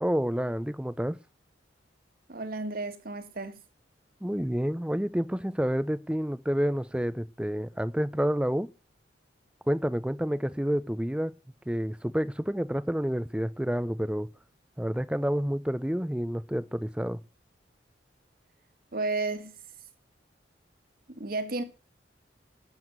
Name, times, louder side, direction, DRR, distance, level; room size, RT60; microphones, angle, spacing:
voice 1, 0.0-1.2 4.2-8.7 9.7-11.3 11.7-14.3 14.8-17.2, equal, 5° right, 0.6 m, -29 dB
voice 2, 2.3-3.6 18.9-19.5 21.1-21.6, right 3 dB, 50° right, 1.9 m, -32 dB
12.0 x 7.1 x 7.9 m
head